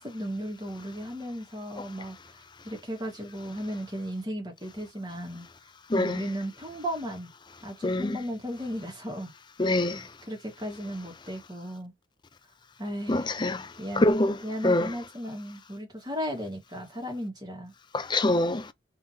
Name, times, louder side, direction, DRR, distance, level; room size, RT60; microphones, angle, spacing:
voice 1, 0.0-5.5 5.9-7.3 7.6-9.3 9.9-11.9 12.8-13.3 13.8-14.1 14.4-17.7, equal, 20° right, 1.6 m, -36 dB
voice 2, 7.8-8.2 9.6-10.0 13.1-13.6 14.0-14.3 14.6-14.9 17.9-18.6, left 1 dB, 25° left, 0.5 m, -24 dB
4.6 x 3.6 x 2.8 m
head